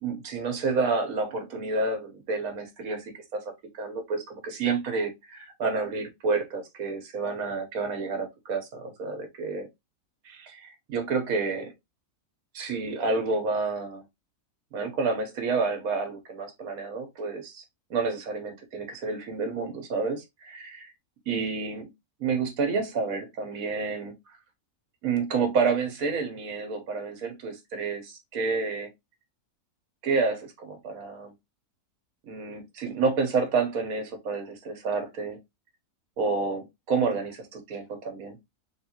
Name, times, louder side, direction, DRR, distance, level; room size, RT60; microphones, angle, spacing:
voice 1, 0.0-3.0 3.3-3.4 3.7-9.7 10.2-11.7 12.5-14.0 14.7-17.6 17.9-20.9 21.3-21.9 22.2-24.1 25.0-28.9 30.0-31.3 32.3-35.4 36.2-38.4, right 4 dB, 70° right, 1.5 m, -29 dB
3.6 x 3.3 x 2.9 m
omnidirectional pair, 1.6 m